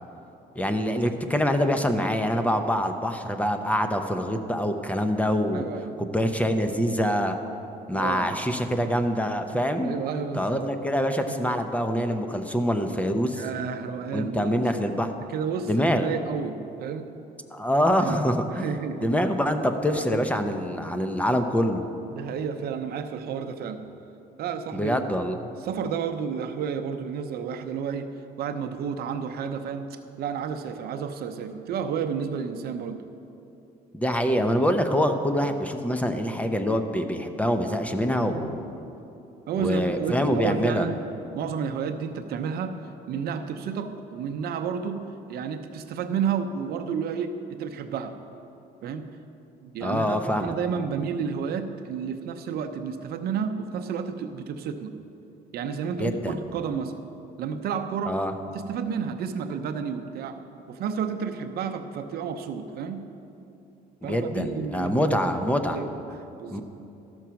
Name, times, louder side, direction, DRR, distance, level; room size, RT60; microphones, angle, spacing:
voice 1, 0.5-5.7 6.0-7.4 7.9-9.9 10.3-13.4 14.1-15.1 15.7-16.1 17.5-21.8 24.7-25.4 33.9-38.6 39.6-40.9 49.8-50.5 56.0-56.4 58.1-58.3 64.0-65.8 66.5-66.6, equal, 10° left, 7 dB, 0.7 m, -25 dB
voice 2, 5.5-6.0 7.9-8.3 9.8-10.7 11.3-11.4 13.3-17.1 18.0-18.2 18.5-19.1 19.9-20.2 22.1-23.8 24.4-25.1 25.6-28.1 28.4-29.9 30.2-33.0 38.1-38.6 39.5-41.0 41.3-42.8 43.1-48.2 48.8-49.2 49.6-55.0 55.5-57.0 57.4-58.2 58.5-60.4 60.7-63.1 64.0-65.3 65.7-66.6, right 6 dB, 65° right, 7 dB, 0.7 m, -31 dB
13.5 x 6.3 x 5.8 m, 2.8 s
cardioid pair, 110°, 17 cm